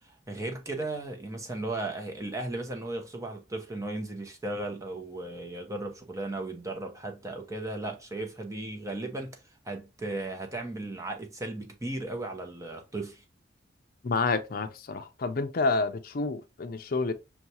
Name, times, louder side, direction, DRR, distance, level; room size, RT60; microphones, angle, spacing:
voice 1, 0.3-9.4 9.6-13.2, right 2 dB, 15° right, 0.8 m, -36 dB
voice 2, 14.0-17.1, left 3 dB, 55° left, 0.5 m, -29 dB
6.6 x 2.3 x 2.8 m
head